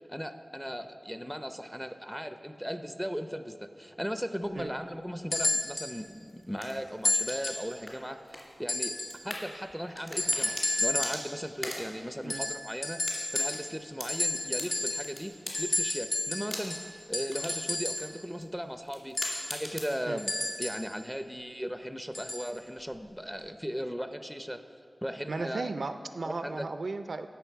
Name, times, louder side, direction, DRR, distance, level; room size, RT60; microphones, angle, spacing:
voice 1, 0.1-9.0 9.2-13.0 13.3-16.8 17.1-19.2 19.5-24.6 25.0-25.7 26.2-26.7, equal, ahead, 8 dB, 0.6 m, -37 dB
sound 1, 5.3-5.9 7.0-7.7 8.7-9.2 10.2-11.3 12.3-13.8 14.1-15.2 15.5-18.1 19.2-20.9 22.1-22.5 23.4-23.5, left 2 dB, 70° left, 1.5 m, -31 dB
sound 2, 6.0-20.0, left 1 dB, 30° left, 2.4 m, -44 dB
voice 2, 25.3-27.3, right 3 dB, 80° right, 9 dB, 0.4 m, -35 dB
16.0 x 6.0 x 4.6 m, 2.2 s
wide cardioid pair, 75°, 0 cm